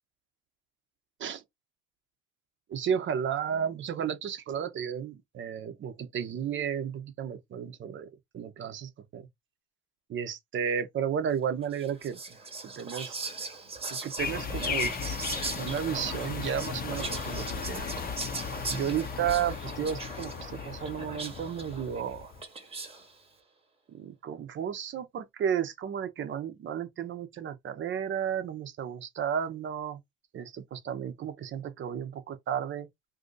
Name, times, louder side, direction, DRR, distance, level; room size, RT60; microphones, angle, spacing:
voice 1, 2.7-8.1 8.3-9.3 10.1-12.4 12.6-13.2 13.9-14.9 15.6-17.9 18.7-22.3 23.9-30.0 30.3-32.9, right 8 dB, 40° right, 0.8 m, -33 dB
Whispering, 11.7-23.1, right 3 dB, 20° right, 1.1 m, -40 dB
sound 1, 14.2-22.4, left 6 dB, 30° left, 0.7 m, -36 dB
2.8 x 2.5 x 3.8 m
supercardioid pair, 100°, 31 cm